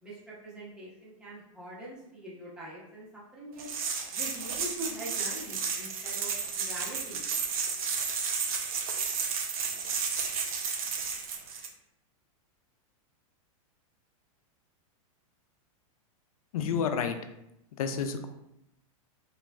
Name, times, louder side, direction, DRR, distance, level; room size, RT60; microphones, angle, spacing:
voice 1, 0.0-3.7 4.1-7.3, right 1 dB, 5° right, -8 dB, 0.7 m, -43 dB
sound 1, 3.6-11.7, right 6 dB, 90° right, 0.5 m, -32 dB
voice 2, 16.5-17.2 17.8-18.3, left 6 dB, 85° left, 7 dB, 0.4 m, -29 dB
3.1 x 2.4 x 2.2 m, 0.83 s
supercardioid pair, 150°, 18 cm